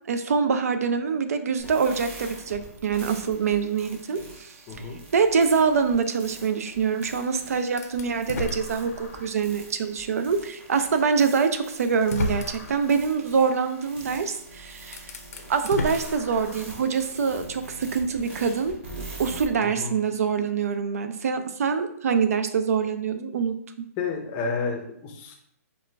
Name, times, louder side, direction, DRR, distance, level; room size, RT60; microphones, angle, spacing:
voice 1, 0.1-4.5 5.1-15.0 15.5-23.6, right 6 dB, 65° right, 8 dB, 0.5 m, -25 dB
sound 1, 1.6-19.5, right 2 dB, 45° right, 1.3 m, -44 dB
voice 2, 4.7-5.0 19.8-19.9 24.0-25.4, left 4 dB, 20° left, 1 dB, 0.6 m, -30 dB
sound 2, 7.8-9.4 9.9-10.0 11.2-11.3 11.9-12.9 14.3-14.4 14.8-16.8, left 3 dB, 75° left, 0.6 m, -33 dB
4.9 x 2.5 x 3.3 m, 0.70 s
hypercardioid pair, 165°, 9 cm